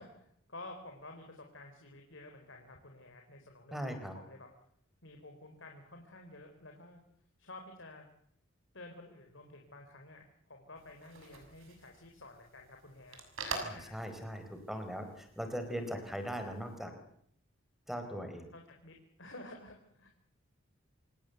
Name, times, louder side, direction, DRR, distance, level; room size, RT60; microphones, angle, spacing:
voice 1, 0.0-4.5 5.0-7.0 7.4-8.1 8.7-13.2 13.4-14.0 18.5-20.1, left 2 dB, 65° left, 2 dB, 4.2 m, -51 dB
voice 2, 3.7-4.1 13.6-16.9 17.9-18.5, equal, ahead, 7 dB, 4.5 m, -40 dB
sound 1, 10.8-16.8, right 4 dB, 80° right, 6.6 m, -47 dB
27.0 x 19.0 x 8.2 m, 0.69 s
head